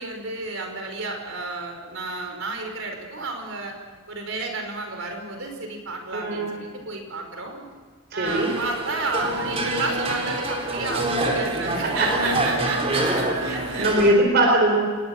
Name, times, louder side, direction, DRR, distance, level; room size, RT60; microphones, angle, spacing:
voice 1, 0.0-3.8 4.1-7.6 8.1-13.9, right 3 dB, 65° right, 3 dB, 5.2 m, -31 dB
voice 2, 6.1-6.5 8.1-8.5 11.6-12.3 13.5-14.8, right 1 dB, 50° right, 1 dB, 4.5 m, -21 dB
sound 1, 8.2-14.1, right 2 dB, 30° right, 4.2 m, -26 dB
28.0 x 21.0 x 6.2 m, 1.5 s
head